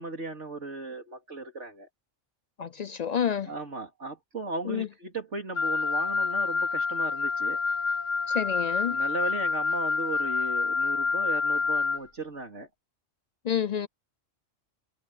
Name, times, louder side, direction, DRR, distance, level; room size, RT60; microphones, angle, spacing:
voice 1, 0.0-1.9 3.5-7.6 8.9-12.7, right 3 dB, 70° right, 3.8 m, -36 dB
voice 2, 2.6-3.5 4.6-4.9 8.3-9.0 13.4-13.9, left 8 dB, 65° left, 0.4 m, -29 dB
Wind instrument woodwind instrument, 5.5-12.0, left 4 dB, 85° left, 2.2 m, -27 dB
omnidirectional pair, 1.3 m